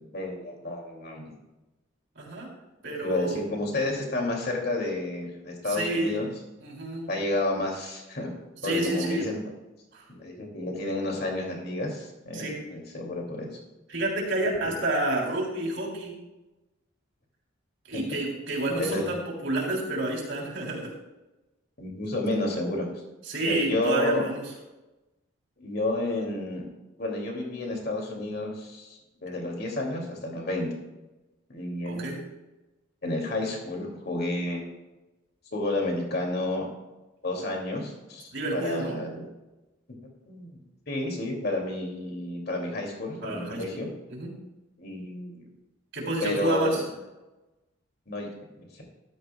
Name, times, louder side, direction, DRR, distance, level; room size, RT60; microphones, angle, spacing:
voice 1, 0.1-1.3 3.0-6.3 7.1-8.3 8.6-9.5 10.1-13.5 17.9-18.0 18.8-19.1 21.8-22.9 23.4-24.3 25.6-26.7 27.0-30.7 31.5-32.2 33.0-34.6 35.5-36.7 37.2-39.2 40.3-40.5 40.9-43.9 44.8-45.5 46.2-46.8 48.1-48.3 48.6-48.8, left 2 dB, 50° left, 0 dB, 2.6 m, -30 dB
voice 2, 2.1-2.5 2.8-3.4 5.7-6.2 6.6-7.1 8.6-9.3 9.9-10.0 12.3-12.6 13.9-16.1 17.9-20.9 23.2-24.4 31.8-32.2 38.3-38.9 43.2-43.8 44.1-44.3 45.9-46.8, right 2 dB, 65° right, -2 dB, 3.5 m, -29 dB
14.0 x 12.5 x 2.3 m, 1.1 s
head